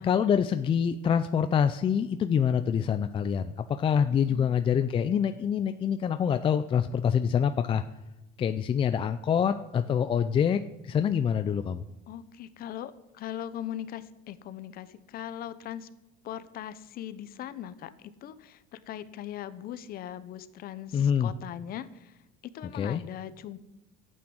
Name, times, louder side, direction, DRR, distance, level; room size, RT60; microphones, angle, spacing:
voice 1, 0.0-7.8 8.4-11.8 20.9-21.3 22.7-23.0, left 7 dB, 25° left, 9 dB, 0.5 m, -26 dB
voice 2, 12.1-15.9 16.2-22.2 22.4-23.6, left 11 dB, 45° left, 14 dB, 1.0 m, -40 dB
12.5 x 8.8 x 7.7 m, 0.95 s
cardioid pair, 145°, 21 cm